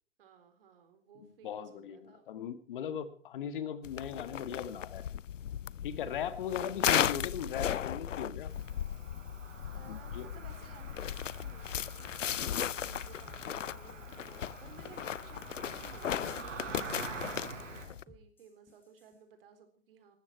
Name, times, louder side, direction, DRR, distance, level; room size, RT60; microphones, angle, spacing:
voice 1, 0.2-2.3 6.3-6.8 9.7-20.2, right 7 dB, 45° right, 7 dB, 4.1 m, -57 dB
voice 2, 1.2-5.1 5.8-8.5 9.9-10.3, left 8 dB, 40° left, 12 dB, 1.7 m, -39 dB
sound 1, 3.8-18.0, left 9 dB, 75° left, 0.7 m, -36 dB
Cricket, 8.5-17.9, right 4 dB, 70° right, 5.9 m, -47 dB
sound 2, 12.7-19.2, left 2 dB, 5° left, 3.7 m, -57 dB
19.5 x 14.0 x 4.6 m, 0.43 s
hypercardioid pair, 145°, 39 cm